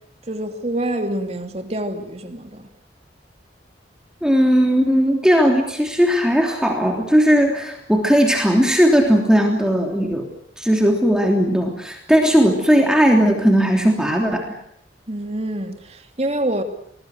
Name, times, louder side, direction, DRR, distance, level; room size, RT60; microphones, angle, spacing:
voice 1, 0.3-2.7 15.1-15.8 16.2-16.6, right 1 dB, 35° right, 2.8 m, -26 dB
voice 2, 4.2-10.3 10.6-14.5, equal, 5° right, 3.2 m, -17 dB
28.0 x 20.5 x 8.0 m
head